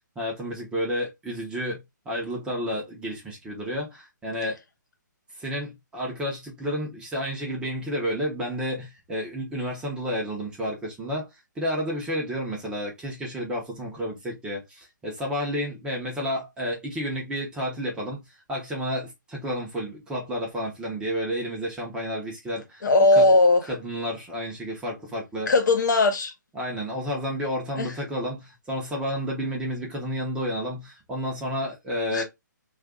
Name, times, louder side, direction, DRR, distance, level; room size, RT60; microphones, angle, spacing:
voice 1, 0.2-4.6 5.4-11.3 11.6-18.2 18.5-22.9 23.1-23.3 23.7-25.5 26.5-32.2, equal, 10° right, 0.7 m, -31 dB
voice 2, 22.8-23.6 25.5-26.3 27.8-27.9 32.1-32.2, left 2 dB, 65° left, 1.0 m, -18 dB
2.5 x 2.4 x 3.6 m
hypercardioid pair, 155°, 10 cm